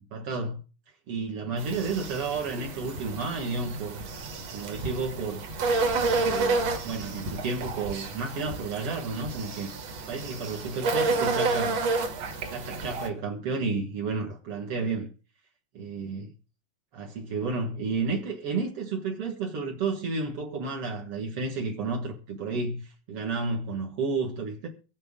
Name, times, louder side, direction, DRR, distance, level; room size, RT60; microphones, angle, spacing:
voice 1, 0.1-0.6 1.1-4.3 4.5-5.4 6.2-9.7 10.1-11.8 12.5-15.1 15.7-16.3 16.9-24.7, right 4 dB, 75° right, 1.3 m, -31 dB
sound 1, 1.6-13.1, right 3 dB, 55° right, 2.0 m, -30 dB
24.0 x 8.5 x 3.7 m
omnidirectional pair, 5.1 m